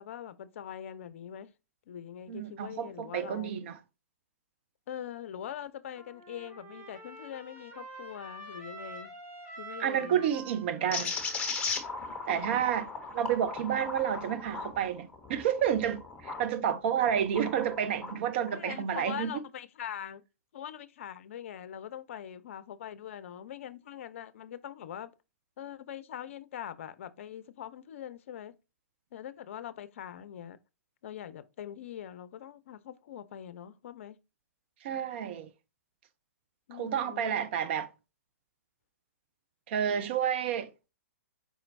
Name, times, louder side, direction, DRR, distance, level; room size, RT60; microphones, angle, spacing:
voice 1, 0.0-1.5 1.9-3.5 4.9-9.1 9.6-10.2 12.0-12.2 12.5-12.6 18.5-20.2 20.5-25.1 25.6-28.6 29.1-30.6 31.0-34.2 36.7-37.3, left 10 dB, 55° left, 0.5 m, -43 dB
voice 2, 2.3-3.8 9.8-11.1 12.3-12.9 13.1-19.4 34.8-35.5 36.7-37.9 39.7-40.7, right 9 dB, 45° right, 0.5 m, -30 dB
Trumpet, 5.9-12.6, right 2 dB, 15° right, 2.4 m, -48 dB
sound 1, 10.9-16.5 17.0-18.2, left 4 dB, 15° left, 1.0 m, -37 dB
4.8 x 4.3 x 2.6 m
figure-of-eight pair, 115°, 8 cm